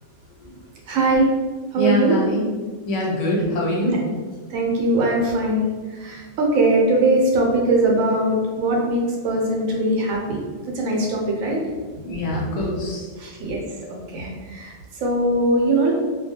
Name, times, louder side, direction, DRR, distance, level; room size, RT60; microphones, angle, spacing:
voice 1, 0.9-1.3 1.7-2.2 4.5-5.7 6.0-10.4 10.7-11.6 12.3-12.4 13.2-13.6 14.1-14.7 15.0-15.9, right 2 dB, 85° right, -1 dB, 1.0 m, -20 dB
voice 2, 1.8-2.5 2.9-4.1 12.0-13.1, equal, 90° left, -3 dB, 0.3 m, -23 dB
2.3 x 2.2 x 2.7 m, 1.4 s
omnidirectional pair, 1.4 m